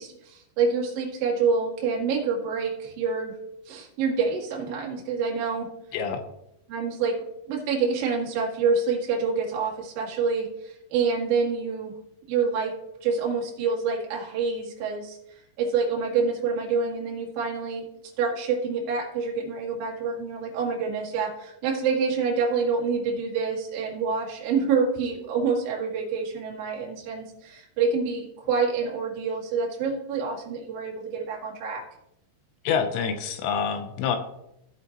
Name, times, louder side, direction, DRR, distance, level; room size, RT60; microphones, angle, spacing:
voice 1, 0.0-3.3 3.7-5.7 6.7-11.9 12.2-12.7 13.0-15.2 15.6-17.8 18.2-31.8, right 5 dB, 55° right, -3 dB, 3.4 m, -27 dB
voice 2, 5.9-6.2 32.6-34.2, left 7 dB, 80° left, 7 dB, 2.6 m, -26 dB
15.0 x 8.1 x 3.0 m, 0.80 s
omnidirectional pair, 5.9 m